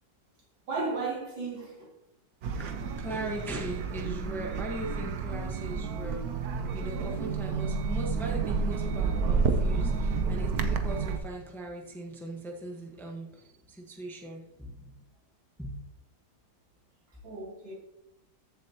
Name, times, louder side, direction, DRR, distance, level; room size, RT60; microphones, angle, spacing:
voice 1, 0.7-1.9 17.2-17.7, right 3 dB, 85° right, 4.1 m, -34 dB
sound 1, 2.4-11.2, right 4 dB, 60° right, 1.2 m, -30 dB
voice 2, 2.6-15.0 15.6-15.8, right 1 dB, ahead, 1.1 m, -39 dB
14.5 x 7.3 x 3.0 m
omnidirectional pair, 2.0 m